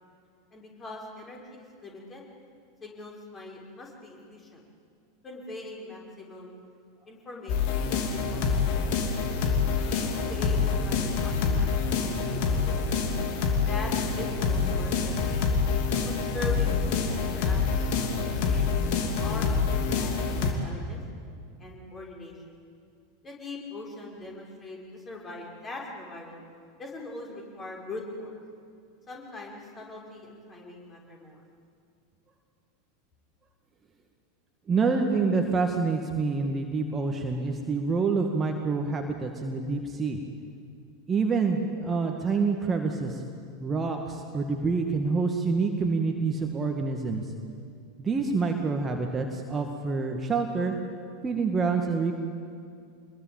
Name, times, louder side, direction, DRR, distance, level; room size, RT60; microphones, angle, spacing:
voice 1, 0.5-2.2 2.8-4.6 5.2-6.7 7.1-9.2 9.8-13.1 13.6-15.4 16.0-18.6 19.2-21.0 21.6-22.4 23.2-26.4 26.8-28.4 29.1-31.4, left 2 dB, 20° left, -1 dB, 6.2 m, -41 dB
sound 1, 7.5-20.5, left 5 dB, 50° left, 3.0 m, -26 dB
voice 2, 34.7-40.2 41.1-43.2 43.6-47.2 48.0-50.7 51.2-52.1, right 4 dB, 20° right, 3 dB, 2.0 m, -27 dB
26.5 x 21.5 x 9.0 m, 2.3 s
figure-of-eight pair, 85°, 0 cm